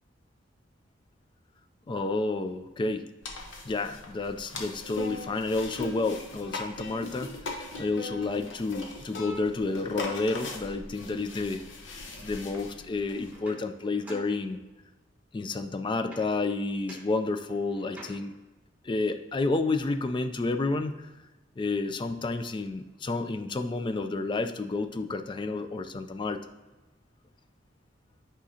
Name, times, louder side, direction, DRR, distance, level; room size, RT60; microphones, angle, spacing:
voice 1, 1.9-3.1 3.7-11.6 12.2-14.6 15.3-18.3 18.8-21.1 21.6-26.4, left 3 dB, 25° left, 9 dB, 0.3 m, -30 dB
sound 1, 3.2-13.4, left 3 dB, 90° left, 0.9 m, -40 dB
sound 2, 13.3-14.9 16.1-16.6 16.9-18.5 21.8-21.9 22.2-23.2, right 1 dB, 10° right, 1.0 m, -50 dB
7.9 x 5.0 x 2.8 m, 1.1 s
head